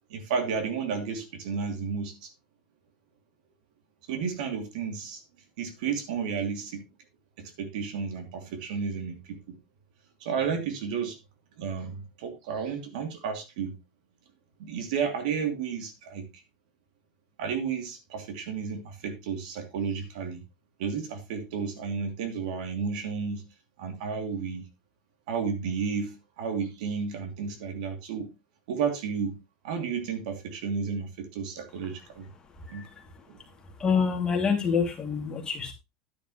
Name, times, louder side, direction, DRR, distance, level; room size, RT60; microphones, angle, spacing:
voice 1, 0.1-2.3 4.1-5.2 5.6-6.9 7.4-9.6 10.2-11.2 11.6-13.8 14.6-16.3 17.4-20.4 20.8-23.4 23.8-24.6 25.3-28.3 28.7-29.4 29.6-32.3 32.7-32.9 33.3-33.4, right 6 dB, 75° right, 2.8 m, -32 dB
voice 2, 32.6-33.0 33.8-35.7, left 6 dB, 20° left, 2.6 m, -27 dB
10.0 x 9.8 x 3.1 m
supercardioid pair, 150°, 4 cm